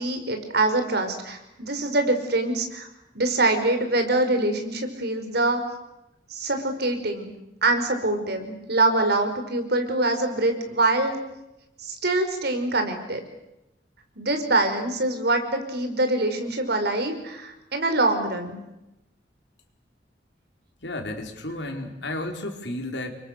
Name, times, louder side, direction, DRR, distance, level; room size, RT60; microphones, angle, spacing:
voice 1, 0.0-2.9 3.1-5.6 6.3-7.3 7.6-11.2 11.8-13.2 14.1-18.6, right 2 dB, 60° right, 6 dB, 5.2 m, -24 dB
voice 2, 20.8-23.1, left 1 dB, 70° left, 4 dB, 4.8 m, -32 dB
30.0 x 24.5 x 6.8 m, 0.90 s
head